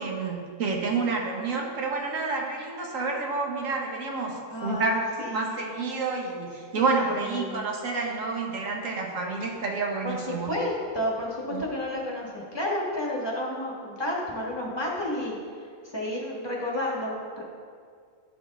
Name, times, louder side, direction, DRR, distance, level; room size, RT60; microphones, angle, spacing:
voice 1, 0.0-10.5 11.5-11.7, right 3 dB, 70° right, 0 dB, 1.5 m, -29 dB
voice 2, 4.5-5.6 6.7-7.6 10.0-17.4, left 1 dB, 20° left, -3 dB, 1.3 m, -31 dB
11.0 x 5.2 x 3.6 m, 2.1 s
omnidirectional pair, 1.4 m